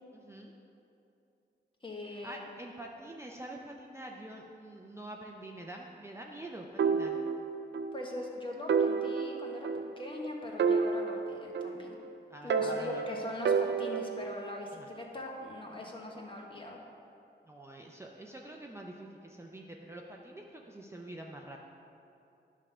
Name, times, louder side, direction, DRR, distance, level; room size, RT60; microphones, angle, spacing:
voice 1, 0.1-0.5 2.0-7.2 12.3-13.1 14.7-14.9 17.5-21.6, right 1 dB, 15° right, -1 dB, 0.5 m, -46 dB
voice 2, 1.8-2.4 7.9-12.0 12.4-16.8, left 1 dB, 30° left, -1 dB, 1.2 m, -41 dB
sound 1, 6.8-8.0 8.2-8.3 8.7-10.2 10.6-12.0 12.5-14.3, right 5 dB, 75° right, 0.4 m, -30 dB
10.5 x 3.7 x 6.7 m, 2.8 s
wide cardioid pair, 115°, 18 cm